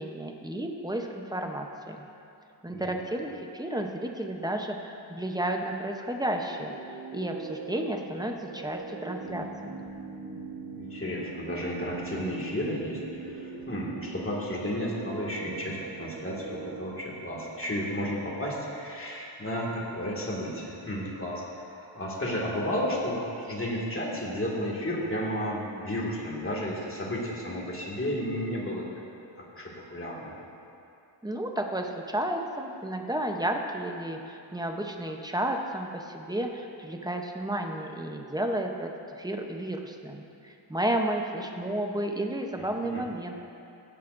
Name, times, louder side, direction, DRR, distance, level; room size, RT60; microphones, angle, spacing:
voice 1, 0.0-2.0 2.6-6.7 7.1-9.8 31.2-43.4, right 1 dB, 10° right, 3 dB, 0.7 m, -32 dB
sound 1, 6.5-16.8, right 5 dB, 50° right, 1.0 m, -41 dB
voice 2, 10.8-28.9 29.3-30.4 42.6-43.0, equal, 30° left, -3 dB, 2.0 m, -33 dB
15.5 x 10.5 x 2.6 m, 2.7 s
wide cardioid pair, 120°, 46 cm